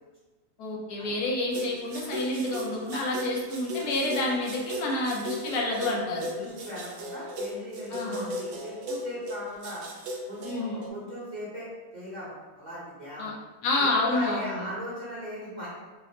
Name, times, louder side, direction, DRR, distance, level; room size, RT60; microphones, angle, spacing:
voice 1, 0.6-6.3 7.9-8.3 10.4-10.8 13.2-13.3 13.6-14.6, left 2 dB, 80° left, -2 dB, 1.2 m, -29 dB
sound 1, 1.5-10.9, equal, 70° right, 0.6 m, -36 dB
voice 2, 6.3-9.8 10.3-11.7 11.9-13.3 13.8-15.7, equal, 35° right, -9 dB, 1.0 m, -38 dB
4.0 x 2.0 x 2.8 m, 1.2 s
omnidirectional pair, 1.6 m